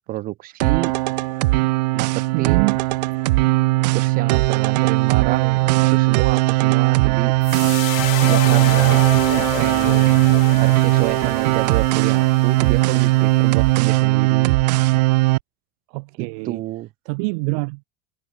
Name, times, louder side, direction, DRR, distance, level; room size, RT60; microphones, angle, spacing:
voice 1, 0.1-0.9 1.9-2.8 3.9-7.3 8.2-9.1 9.5-10.3 10.6-14.6 16.2-16.9, right 16 dB, 45° right, 6.4 m, -29 dB
sound 1, 0.6-15.4, right 21 dB, 80° right, 0.6 m, -18 dB
voice 2, 2.3-2.8 15.9-16.6 17.1-17.8, right 33 dB, 65° right, 2.3 m, -25 dB
sound 2, 7.4-13.8, left 40 dB or more, 60° left, 1.5 m, -30 dB
supercardioid pair, 150°, 21 cm